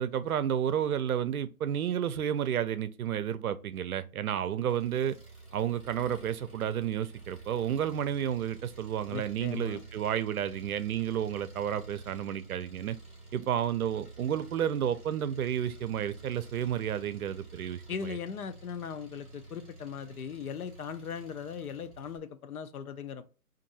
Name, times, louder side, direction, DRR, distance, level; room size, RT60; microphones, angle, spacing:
voice 1, 0.0-5.2 5.5-13.0 13.3-18.2, right 9 dB, 70° right, 0.5 m, -31 dB
Engine, 4.7-22.2, right 3 dB, 10° left, 0.5 m, -50 dB
voice 2, 9.1-9.8 17.9-23.2, left 6 dB, 70° left, 0.7 m, -39 dB
2.6 x 2.6 x 3.9 m
hypercardioid pair, 160°, 45 cm